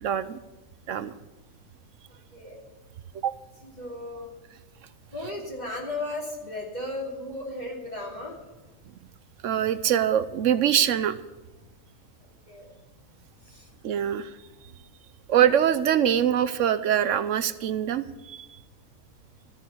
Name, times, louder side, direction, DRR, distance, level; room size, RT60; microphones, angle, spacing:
voice 1, 0.0-0.4 0.9-1.1 3.2-3.3 9.4-11.2 13.8-14.3 15.3-18.5, right 9 dB, 65° right, 13 dB, 0.9 m, -23 dB
voice 2, 2.1-2.6 3.6-4.3 5.1-8.4 12.5-12.7 13.4-13.7 14.0-14.1, left 2 dB, 30° left, -3 dB, 2.8 m, -35 dB
14.0 x 6.7 x 9.4 m, 1.1 s
omnidirectional pair, 1.5 m